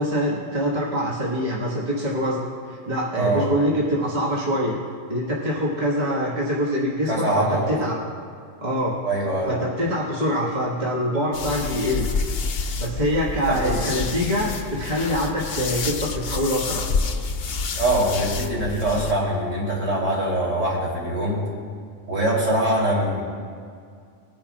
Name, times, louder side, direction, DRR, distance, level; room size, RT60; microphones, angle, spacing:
voice 1, 0.0-2.4 2.6-4.8 5.1-8.0 8.6-9.0 9.5-12.1 12.8-16.9, equal, 35° right, -5 dB, 1.8 m, -24 dB
voice 2, 3.1-3.5 7.1-7.8 9.0-9.6 13.5-13.8 17.8-21.4 22.1-23.2, right 1 dB, 70° right, -5 dB, 3.7 m, -23 dB
sound 1, 11.3-19.1, left 4 dB, 55° left, 0.8 m, -28 dB
20.5 x 10.0 x 2.4 m, 2.2 s
omnidirectional pair, 1.4 m